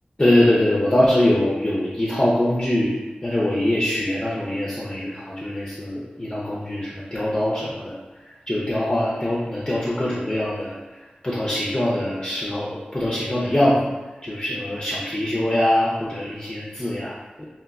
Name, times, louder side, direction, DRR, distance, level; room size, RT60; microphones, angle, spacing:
voice 1, 0.2-2.9 3.2-8.0 8.5-10.8 11.2-13.8 14.2-17.5, left 1 dB, 25° left, -7 dB, 0.5 m, -23 dB
2.5 x 2.1 x 3.5 m, 1.2 s
cardioid pair, 40°, 3 cm